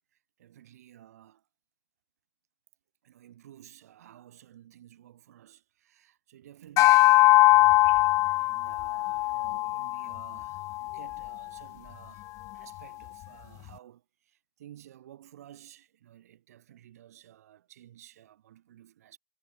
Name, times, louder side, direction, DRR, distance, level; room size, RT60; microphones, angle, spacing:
voice 1, 0.1-1.5 3.0-7.8 8.3-19.2, right 12 dB, 65° right, 5.6 m, -53 dB
sound 1, 6.8-11.4, left 20 dB, 35° left, 0.7 m, -22 dB
hypercardioid pair, 120°, 9 cm